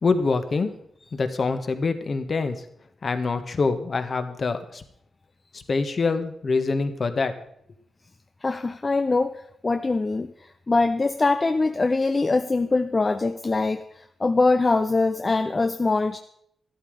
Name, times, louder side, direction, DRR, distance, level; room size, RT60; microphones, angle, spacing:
voice 1, 0.0-0.7 1.1-2.6 3.0-4.8 5.5-7.4, left 4 dB, 40° left, 9 dB, 1.3 m, -25 dB
voice 2, 8.4-10.3 10.7-16.2, left 3 dB, 25° left, 9 dB, 0.6 m, -23 dB
13.5 x 12.0 x 5.1 m, 0.69 s
wide cardioid pair, 140°, 0 cm